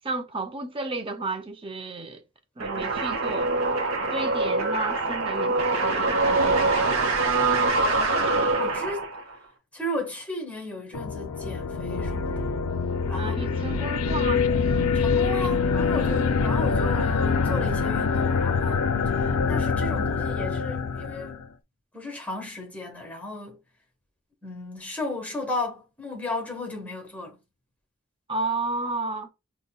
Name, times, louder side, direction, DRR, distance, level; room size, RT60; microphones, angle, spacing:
voice 1, 0.0-2.2 2.6-3.5 4.1-6.1 13.1-14.9 28.3-29.3, right 2 dB, 25° right, 0.5 m, -32 dB
sound 1, 2.6-9.3, right 3 dB, 75° right, 0.7 m, -24 dB
voice 2, 7.9-9.1 9.7-12.5 13.1-13.6 14.9-18.9 19.1-21.4 21.9-23.6 24.4-27.4, left 2 dB, 5° left, 1.1 m, -35 dB
sound 2, 10.9-21.5, left 5 dB, 80° left, 0.4 m, -25 dB
5.1 x 2.1 x 2.2 m
head